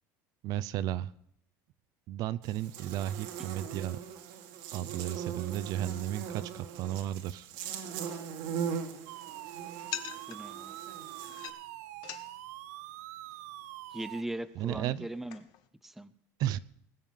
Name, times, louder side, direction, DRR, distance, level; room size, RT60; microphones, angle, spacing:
voice 1, 0.4-1.1 2.1-4.0 4.7-7.5 14.6-15.1 16.4-16.6, right 12 dB, 55° right, 16 dB, 0.6 m, -34 dB
Buzz, 2.4-11.5, right 7 dB, 70° right, 1.7 m, -40 dB
sound 1, 8.4-15.7, left 11 dB, 55° left, 1.2 m, -48 dB
sound 2, 9.1-14.2, right 15 dB, 90° right, 0.7 m, -45 dB
voice 2, 10.3-10.8 13.9-15.5 15.8-16.1, right 1 dB, 5° right, 14 dB, 0.5 m, -39 dB
20.0 x 7.3 x 5.6 m, 0.72 s
cardioid pair, 140°, 8 cm